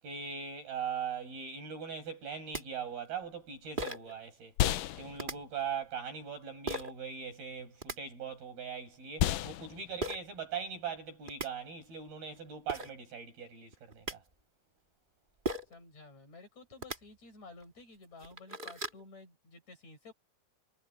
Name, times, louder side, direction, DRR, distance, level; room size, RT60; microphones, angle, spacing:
voice 1, 0.0-4.5 5.0-14.2, right 6 dB, 85° right, 9.7 m, -40 dB
sound 1, 2.2-2.3 2.5-2.6 3.8-4.1 5.2-5.3 6.7-6.9 7.6-8.0 10.0-10.2 11.0-11.1 11.3-11.5 12.4-12.5 12.7-12.9 13.7-14.1 15.4-15.8 16.7-17.0 17.6-17.7 18.1-19.0, right 2 dB, 20° right, 1.3 m, -37 dB
sound 2, 3.2-12.8, left 12 dB, 75° left, 2.3 m, -37 dB
voice 2, 15.7-20.1, left 3 dB, 50° left, 8.8 m, -53 dB
omnidirectional pair, 4.2 m